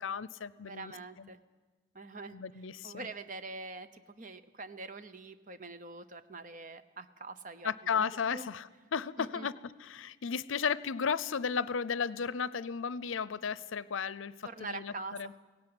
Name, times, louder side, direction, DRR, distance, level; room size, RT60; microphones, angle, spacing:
voice 1, 0.0-0.9 1.2-1.3 2.3-3.1 7.6-15.3, left 6 dB, 80° left, 19 dB, 0.6 m, -34 dB
voice 2, 0.6-1.4 1.9-8.5 9.2-9.5 14.4-15.2, right 3 dB, 40° right, 12 dB, 0.8 m, -44 dB
17.0 x 16.5 x 9.7 m, 1.3 s
head